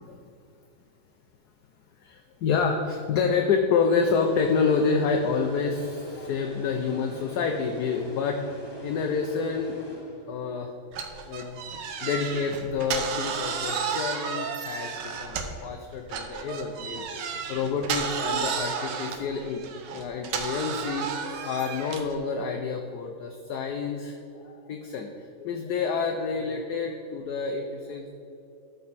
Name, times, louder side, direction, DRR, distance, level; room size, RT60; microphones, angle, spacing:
voice 1, 2.0-8.4 8.8-9.8 10.3-10.7 11.3-11.6 12.0-14.9 15.2-19.6 19.9-21.1 21.4-24.2 24.4-25.1 25.4-28.1, left 5 dB, 70° left, 3 dB, 1.1 m, -28 dB
sound 1, 3.9-10.6, left 1 dB, 30° left, 0.4 m, -44 dB
sound 2, 10.9-15.7 16.1-22.2, right 6 dB, 70° right, 1.4 m, -32 dB
13.0 x 5.4 x 4.1 m, 2.7 s
omnidirectional pair, 2.1 m